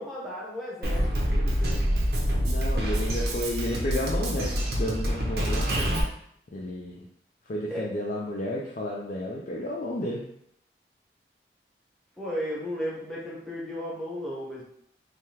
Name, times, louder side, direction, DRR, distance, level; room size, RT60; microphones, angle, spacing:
voice 1, 0.0-1.8 7.7-7.9 12.2-14.6, equal, 5° left, -6 dB, 0.8 m, -35 dB
Drum kit, 0.8-6.0, equal, 60° right, 0.6 m, -26 dB
voice 2, 2.4-5.8 6.5-7.1 7.5-10.2, left 1 dB, 45° left, -3 dB, 0.4 m, -32 dB
3.4 x 2.3 x 2.8 m, 0.70 s
head